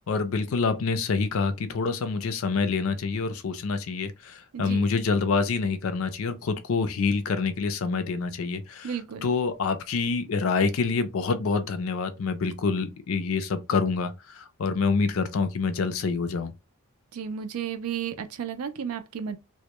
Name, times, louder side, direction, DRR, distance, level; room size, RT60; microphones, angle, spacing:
voice 1, 0.0-16.5, left 4 dB, 70° left, 0.4 m, -27 dB
voice 2, 4.5-4.9 8.8-9.3 17.1-19.4, right 8 dB, 85° right, 0.4 m, -33 dB
2.1 x 2.1 x 2.8 m
head